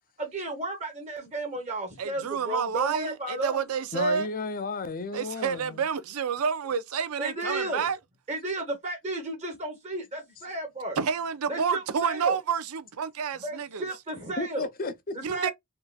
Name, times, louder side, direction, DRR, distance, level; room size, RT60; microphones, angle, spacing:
voice 1, 0.2-3.6 7.2-7.9 8.3-11.0 11.5-12.4 13.4-14.7 15.1-15.5, right 2 dB, 30° right, 1.0 m, -33 dB
voice 2, 2.0-4.3 5.1-8.0 11.0-13.8 15.2-15.5, right 6 dB, 80° right, 0.5 m, -29 dB
voice 3, 3.9-5.8 14.4-15.2, left 3 dB, 40° left, 0.5 m, -33 dB
3.7 x 2.5 x 2.3 m
head